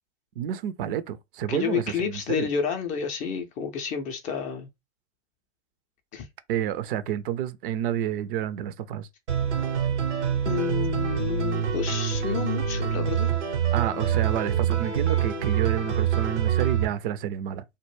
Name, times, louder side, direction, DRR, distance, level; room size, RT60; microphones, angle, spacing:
voice 1, 0.4-2.5 6.5-9.1 13.7-17.6, right 10 dB, 50° right, 0.4 m, -29 dB
voice 2, 1.5-4.7 6.1-6.3 10.5-13.3, left 7 dB, 25° left, 0.3 m, -30 dB
sound 1, 9.3-16.9, right 8 dB, 85° right, 0.8 m, -26 dB
2.1 x 2.0 x 3.1 m
hypercardioid pair, 100°, 34 cm